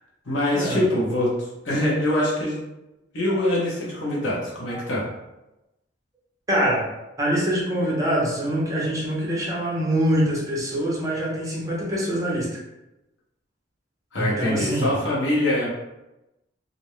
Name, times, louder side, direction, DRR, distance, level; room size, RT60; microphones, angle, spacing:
voice 1, 0.3-1.3 1.6-2.6 3.1-5.0 14.1-15.7, left 1 dB, 70° left, -5 dB, 0.9 m, -23 dB
voice 2, 6.5-6.8 7.2-12.6 14.2-14.9, equal, 15° right, -5 dB, 0.6 m, -24 dB
2.5 x 2.1 x 3.0 m, 0.96 s
head